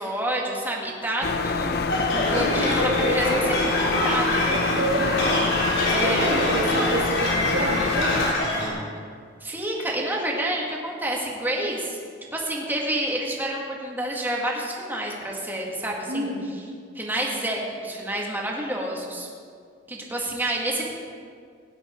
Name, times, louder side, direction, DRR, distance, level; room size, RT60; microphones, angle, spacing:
voice 1, 0.0-1.8 2.1-4.5 5.9-6.3 9.4-12.0 12.3-16.3 17.0-19.3 19.9-20.9, right 1 dB, 10° right, -2 dB, 2.0 m, -28 dB
sound 1, 1.2-8.3, left 4 dB, 55° left, 0.6 m, -26 dB
sound 2, 1.9-8.7, left 1 dB, 85° left, 3.8 m, -25 dB
Bowed string instrument, 2.8-7.4, right 2 dB, 10° left, 2.8 m, -37 dB
voice 2, 4.5-5.2 5.9-8.3 16.1-16.5, right 1 dB, 65° right, -3 dB, 2.6 m, -28 dB
17.0 x 10.5 x 4.6 m, 2.1 s
head